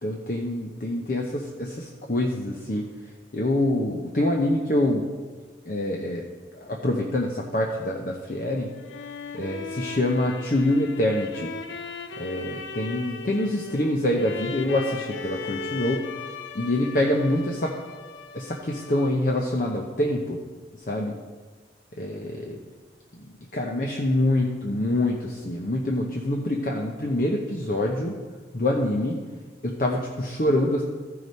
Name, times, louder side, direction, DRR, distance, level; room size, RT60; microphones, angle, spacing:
voice 1, 0.0-2.9 3.3-5.1 5.7-6.2 6.5-8.7 9.3-11.5 12.2-16.1 16.5-17.7 18.3-20.4 20.9-21.2 22.0-22.6 23.2-28.1 28.5-29.2 29.6-30.8, left 1 dB, 50° left, 0 dB, 0.8 m, -25 dB
sound 1, 8.5-19.4, left 4 dB, 90° left, 0.6 m, -38 dB
14.5 x 4.8 x 5.4 m, 1.4 s
head